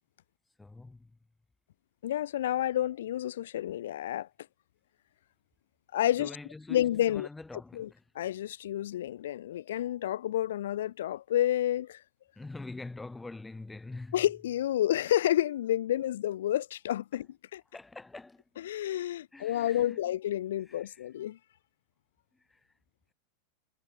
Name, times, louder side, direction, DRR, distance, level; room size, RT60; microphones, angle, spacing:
voice 1, 0.6-1.1 6.2-6.8 7.1-8.0 12.4-14.2 17.7-18.4 19.3-20.0 20.7-20.9 22.5-22.6, left 3 dB, 10° left, 2.0 m, -44 dB
voice 2, 2.0-4.3 5.9-6.4 6.7-7.3 7.7-7.9 8.2-12.0 14.1-17.3 17.5-17.6 18.6-21.4, left 12 dB, 60° left, 2.0 m, -30 dB
figure-of-eight pair, 90°, 0 cm